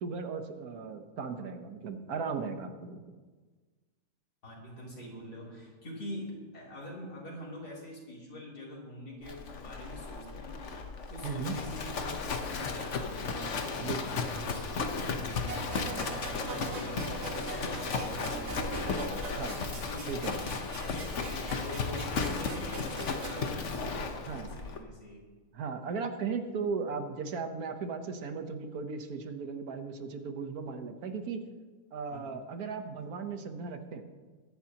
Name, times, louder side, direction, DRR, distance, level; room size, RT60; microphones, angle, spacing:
voice 1, 0.0-3.0 11.2-11.6 13.8-14.3 15.0-15.1 19.4-19.6 20.1-20.4 24.3-24.5 25.5-31.5 31.9-34.0, right 5 dB, 75° right, 7 dB, 1.5 m, -37 dB
voice 2, 4.4-10.7 11.1-18.9 19.7-20.3 20.7-25.2 32.1-32.2, left 1 dB, 85° left, -4 dB, 3.8 m, -44 dB
Livestock farm animals working animals, 9.2-24.8, left 4 dB, 55° left, 1.2 m, -35 dB
sound 1, 15.5-23.5, right 3 dB, 45° right, 1.8 m, -42 dB
22.0 x 10.5 x 2.9 m, 1.4 s
omnidirectional pair, 1.6 m